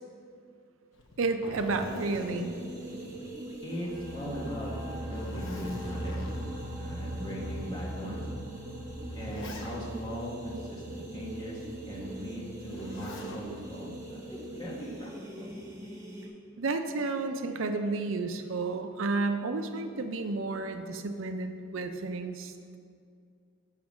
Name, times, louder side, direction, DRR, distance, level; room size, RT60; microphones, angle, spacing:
Zipper (clothing), 0.9-3.9 4.2-4.3 4.9-6.7 7.5-7.6 8.6-10.1 12.6-13.5 14.8-15.3, left 2 dB, 65° left, 0.9 m, -45 dB
voice 1, 1.2-2.5 16.6-22.8, right 3 dB, 75° right, 7 dB, 0.5 m, -31 dB
sound 1, 1.8-16.3, right 1 dB, 15° right, 1.1 m, -43 dB
voice 2, 3.6-6.2 6.7-8.2 9.1-15.1 15.4-15.6, equal, 20° left, -5 dB, 1.6 m, -39 dB
sound 2, 3.7-15.0, right 1 dB, ahead, 1.3 m, -42 dB
7.3 x 6.0 x 6.2 m, 2.3 s
head